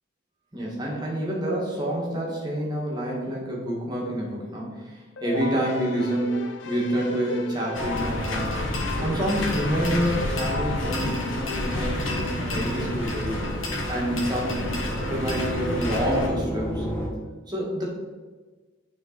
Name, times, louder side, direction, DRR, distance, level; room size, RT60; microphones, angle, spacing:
voice 1, 0.5-8.6 9.0-13.4 13.9-16.8 17.5-17.8, right 1 dB, 20° right, -4 dB, 1.7 m, -28 dB
Keyboard (musical), 5.2-11.7, left 3 dB, 65° left, 0.6 m, -35 dB
sound 1, 7.7-16.3, left 1 dB, 80° left, 1.3 m, -29 dB
sound 2, 9.5-17.1, equal, 10° left, 1.2 m, -37 dB
8.8 x 3.9 x 4.0 m, 1.4 s
head